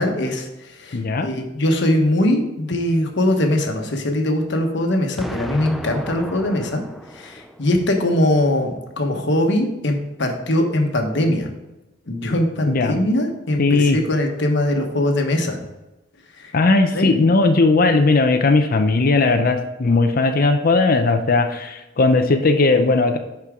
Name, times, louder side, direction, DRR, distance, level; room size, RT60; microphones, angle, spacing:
voice 1, 0.0-6.8 7.1-11.5 12.1-15.6 16.4-16.5 16.9-17.2, left 1 dB, 65° left, 3 dB, 1.2 m, -21 dB
voice 2, 0.9-1.3 12.7-13.0 13.6-14.0 16.5-23.2, left 3 dB, 45° left, 7 dB, 0.6 m, -17 dB
Explosion, 5.2-8.1, equal, ahead, 0.3 m, -35 dB
11.0 x 4.5 x 3.6 m, 0.99 s
head